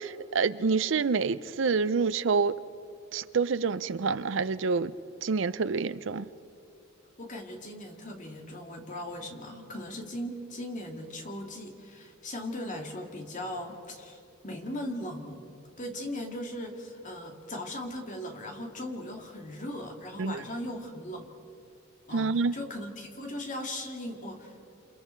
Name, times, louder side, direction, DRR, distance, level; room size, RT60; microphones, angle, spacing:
voice 1, 0.0-2.5 3.1-4.9 5.2-6.3 20.2-20.4 22.1-22.5, right 4 dB, 65° right, 0.5 m, -27 dB
voice 2, 7.2-15.5 15.8-21.3 22.1-24.6, left 1 dB, 35° left, 2.2 m, -38 dB
28.5 x 28.5 x 4.5 m
head